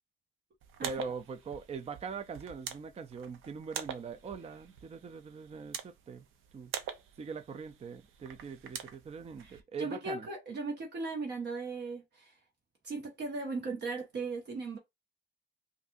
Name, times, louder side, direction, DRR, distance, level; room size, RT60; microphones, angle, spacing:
sound 1, 0.6-9.6, right 8 dB, 85° right, 0.8 m, -45 dB
voice 1, 0.8-6.2 6.5-6.7 7.2-10.3, right 5 dB, 30° right, 0.5 m, -42 dB
voice 2, 9.4-12.4 12.8-14.8, right 3 dB, 60° right, 1.5 m, -37 dB
5.2 x 2.7 x 2.6 m
cardioid pair, 90°, 20 cm